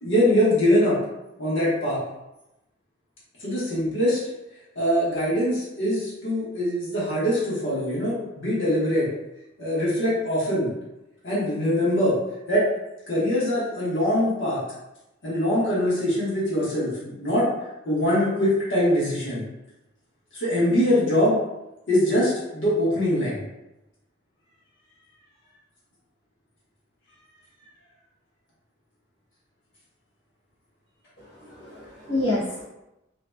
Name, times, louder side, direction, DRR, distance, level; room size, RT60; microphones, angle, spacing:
voice 1, 0.0-1.0 1.4-2.0 3.4-4.2 4.7-9.1 9.6-10.7 11.2-12.2 12.5-12.6 13.1-14.6 15.2-17.5 17.8-19.4 20.3-21.4 21.9-23.4, equal, 80° left, -9 dB, 1.3 m, -23 dB
voice 2, 31.2-32.6, left 1 dB, 65° left, -12 dB, 1.0 m, -28 dB
2.9 x 2.7 x 2.2 m, 0.94 s
head